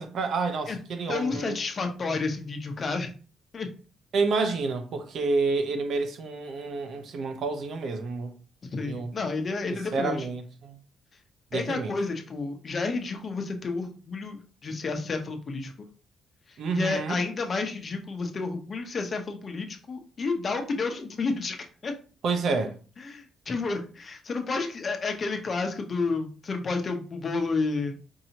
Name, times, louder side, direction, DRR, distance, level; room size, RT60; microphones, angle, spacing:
voice 1, 0.0-1.6 4.1-8.3 8.8-9.2 9.7-10.8 11.5-11.9 16.6-17.2 22.2-22.8, right 4 dB, 65° right, 0.7 m, -29 dB
voice 2, 1.1-3.1 3.5-3.7 8.7-10.3 11.5-15.9 16.5-21.6 21.8-21.9 23.0-28.0, left 4 dB, 40° left, 0.8 m, -30 dB
4.7 x 2.7 x 2.9 m
cardioid pair, 90°, 0 cm